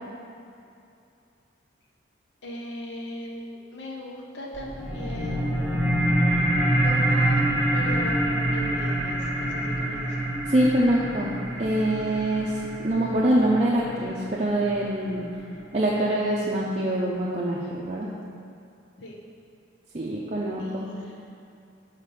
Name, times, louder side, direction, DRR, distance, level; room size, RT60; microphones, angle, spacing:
voice 1, 2.4-5.6 6.8-7.4 7.7-10.2 19.0-19.1 20.6-21.1, left 1 dB, 70° left, -1 dB, 0.9 m, -38 dB
sound 1, 4.5-15.5, right 1 dB, 5° right, 1.1 m, -26 dB
voice 2, 10.5-15.3 15.7-18.1 19.9-21.0, right 1 dB, 35° right, -5 dB, 0.5 m, -25 dB
5.9 x 4.0 x 4.9 m, 2.6 s
head